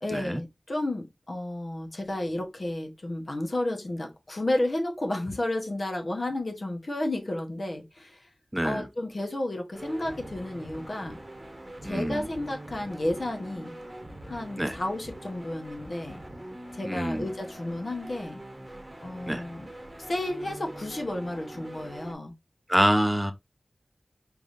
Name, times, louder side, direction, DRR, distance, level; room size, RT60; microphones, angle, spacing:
voice 1, 0.0-8.2 8.6-11.2 11.8-13.8 14.3-16.2 16.7-18.4 19.0-19.7 20.1-22.3, left 1 dB, 55° left, 1.1 m, -32 dB
voice 2, 8.5-8.8 11.8-12.2 14.6-14.8 16.8-17.2 19.3-19.4 22.7-23.3, equal, 10° right, 0.6 m, -25 dB
sound 1, 9.7-22.1, right 1 dB, 25° right, 1.1 m, -43 dB
4.8 x 3.5 x 2.6 m
wide cardioid pair, 80°, 0 cm